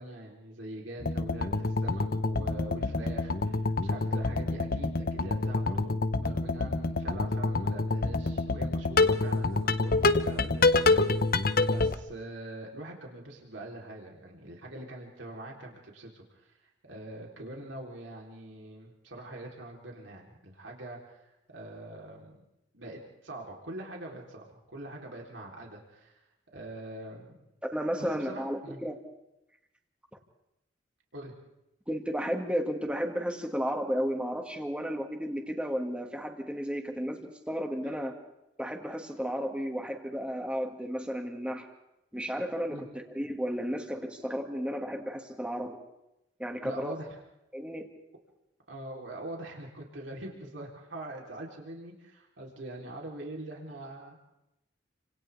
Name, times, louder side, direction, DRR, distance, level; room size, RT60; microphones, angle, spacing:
voice 1, 0.0-5.9 6.2-22.4 22.7-26.2 26.5-27.4 28.0-28.8 31.1-31.3 37.8-38.0 42.4-42.5 42.7-42.9 46.6-47.2 48.7-54.2, right 1 dB, 80° right, -1 dB, 3.7 m, -43 dB
sound 1, 1.0-11.9, left 3 dB, 50° left, 0.9 m, -27 dB
voice 2, 27.7-29.0 31.9-38.1 38.6-41.6 42.1-45.8 46.4-46.9 47.5-47.9, equal, 5° right, 3 dB, 2.1 m, -33 dB
30.0 x 26.0 x 3.5 m, 0.89 s
head